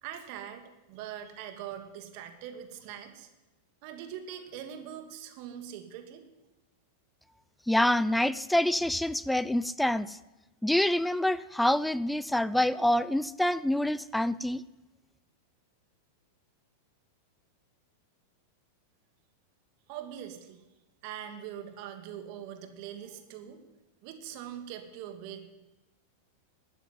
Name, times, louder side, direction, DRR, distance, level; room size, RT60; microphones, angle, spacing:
voice 1, 0.0-3.3 3.8-6.2 19.9-20.6 21.0-23.6 24.0-25.5, right 10 dB, 55° right, 7 dB, 2.4 m, -42 dB
voice 2, 7.7-10.2 10.6-14.6, left 1 dB, 5° left, 18 dB, 0.4 m, -26 dB
13.5 x 9.8 x 9.3 m, 1.1 s
hypercardioid pair, 105°, 0 cm